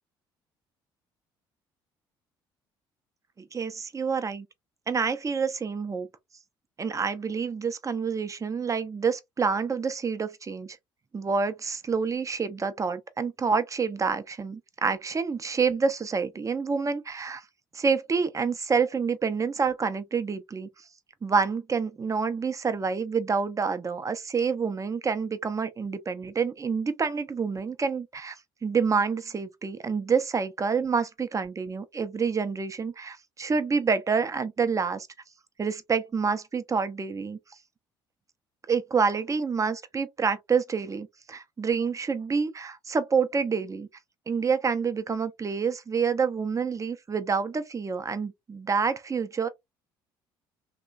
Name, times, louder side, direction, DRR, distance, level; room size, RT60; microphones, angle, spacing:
voice 1, 3.4-4.5 4.9-6.1 6.8-10.8 11.1-17.4 17.7-20.7 21.2-35.1 35.6-37.4 38.7-43.9 44.3-49.5, right 5 dB, 25° right, 0.6 m, -28 dB
2.9 x 2.2 x 2.4 m
hypercardioid pair, 55°, 13 cm